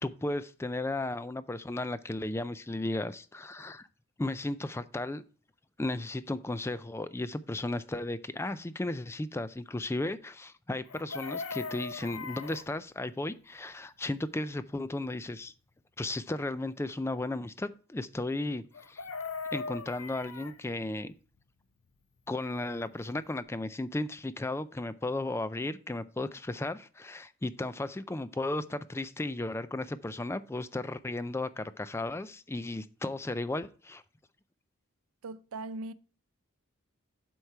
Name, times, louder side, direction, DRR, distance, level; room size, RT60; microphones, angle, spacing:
voice 1, 0.0-3.9 4.2-5.2 5.8-15.5 16.0-19.0 19.5-21.1 22.3-34.0, left 2 dB, 10° left, 0.3 m, -35 dB
Chicken rooster, 10.9-12.7 18.7-20.6 22.8-22.9 23.2-23.4, left 4 dB, 80° left, 1.0 m, -39 dB
voice 2, 35.2-35.9, right 2 dB, 85° right, 0.5 m, -39 dB
8.0 x 4.6 x 5.6 m
head